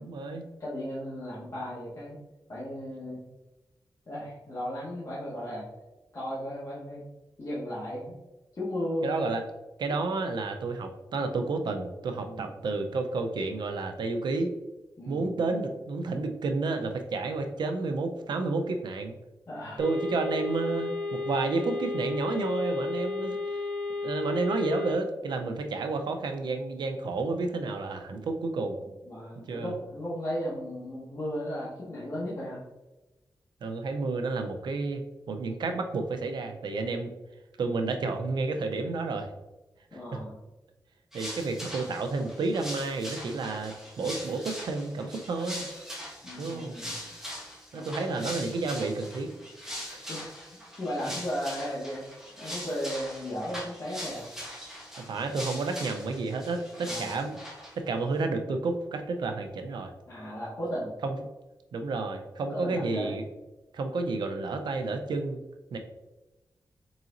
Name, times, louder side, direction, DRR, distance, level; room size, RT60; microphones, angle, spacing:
voice 1, 0.0-0.4 9.0-9.4 9.8-14.5 15.1-19.2 19.8-23.4 24.0-28.8 29.4-29.7 33.6-35.0 35.3-37.1 37.6-39.3 39.9-40.2 41.1-45.6 46.4-46.8 47.7-49.3 49.9-50.0 55.1-57.4 57.7-59.9 61.0-61.1 61.7-63.2 63.7-65.4 65.7-65.8, right 3 dB, 80° right, 5 dB, 0.5 m, -31 dB
voice 2, 0.6-2.2 2.5-3.2 4.1-5.7 6.1-7.0 7.4-8.2 8.6-9.1 12.3-12.5 15.0-15.3 19.5-19.8 28.1-28.3 29.1-32.6 39.9-40.3 46.2-47.1 47.7-48.2 50.1-50.3 50.8-52.0 52.3-54.2 56.9-57.2 60.1-60.9 62.5-63.2, equal, 45° left, -9 dB, 1.1 m, -35 dB
sound 1, 19.8-24.9, left 3 dB, 55° right, 1.0 m, -33 dB
sound 2, 41.1-57.8, equal, 5° right, 1.3 m, -41 dB
3.9 x 3.9 x 2.5 m, 1.1 s
cardioid pair, 80°, 7 cm